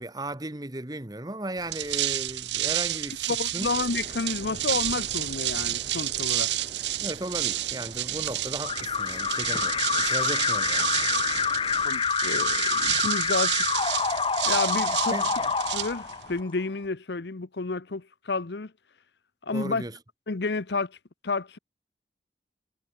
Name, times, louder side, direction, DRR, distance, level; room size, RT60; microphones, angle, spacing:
voice 1, 0.0-3.7 7.0-10.9 15.1-15.3 19.5-20.0, right 1 dB, 20° right, 1.2 m, -36 dB
sound 1, 1.6-16.4, right 14 dB, 80° right, 1.1 m, -30 dB
voice 2, 3.3-6.5 11.8-13.8 14.4-15.2 15.7-18.7 19.4-19.8 20.3-21.0 21.2-21.6, left 3 dB, 75° left, 0.9 m, -30 dB
sound 2, 3.6-11.9, right 1 dB, 35° right, 2.4 m, -46 dB
Alarm, 8.6-16.5, left 6 dB, 30° left, 0.7 m, -27 dB
head